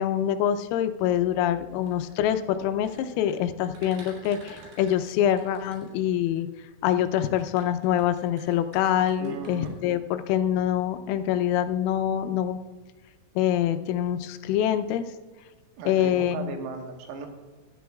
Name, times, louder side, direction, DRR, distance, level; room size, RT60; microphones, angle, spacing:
voice 1, 0.0-6.5 6.8-12.6 13.4-15.1 15.9-16.5, left 10 dB, 85° left, 9 dB, 3.3 m, -25 dB
sound 1, 1.7-6.4 7.1-9.7, right 2 dB, 60° right, 5.3 m, -50 dB
voice 2, 9.2-9.8 15.8-17.3, right 5 dB, 85° right, 3 dB, 4.0 m, -36 dB
17.5 x 13.0 x 2.3 m, 1.4 s
omnidirectional pair, 6.0 m